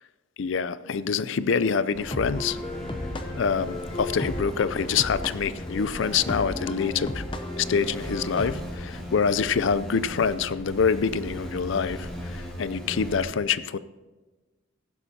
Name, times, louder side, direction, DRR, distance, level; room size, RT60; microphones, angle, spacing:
voice 1, 0.4-2.6 3.3-7.2 7.6-13.8, left 6 dB, 65° left, 0.4 m, -26 dB
sound 1, 1.6-8.5, left 1 dB, 25° left, 0.7 m, -35 dB
sound 2, 1.9-13.2, equal, 5° left, 2.6 m, -38 dB
15.5 x 11.0 x 2.8 m
head